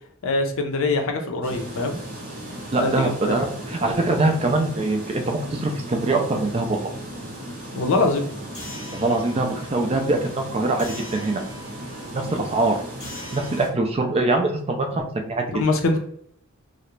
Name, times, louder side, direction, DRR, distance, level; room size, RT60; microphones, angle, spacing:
voice 1, 0.2-2.0 2.8-3.4 7.7-8.3 15.5-16.0, left 3 dB, 65° left, 4 dB, 0.5 m, -23 dB
sound 1, 1.4-13.7, equal, 45° right, 0.7 m, -36 dB
voice 2, 2.7-6.8 8.9-10.9 11.1-11.4 12.1-12.8 13.1-15.4, right 2 dB, 30° right, 4 dB, 0.3 m, -23 dB
sound 2, 8.5-13.6, left 1 dB, 35° left, 0.7 m, -42 dB
2.4 x 2.0 x 3.0 m, 0.65 s
head